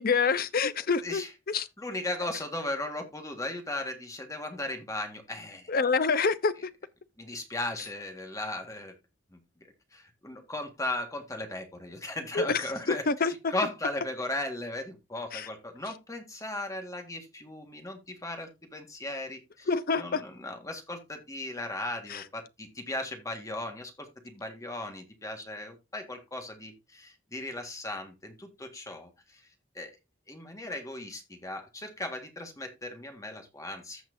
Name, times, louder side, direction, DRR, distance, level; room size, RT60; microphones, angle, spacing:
voice 1, 0.0-1.7 5.7-6.5 12.3-13.5 15.3-15.5 19.7-20.2 22.1-22.2, left 5 dB, 50° left, 0.7 m, -27 dB
voice 2, 1.8-5.6 7.2-8.9 9.3-13.0 13.5-19.7 20.0-29.1 29.7-29.9 30.3-34.0, left 1 dB, 20° left, 1.7 m, -37 dB
14.5 x 5.9 x 2.7 m
head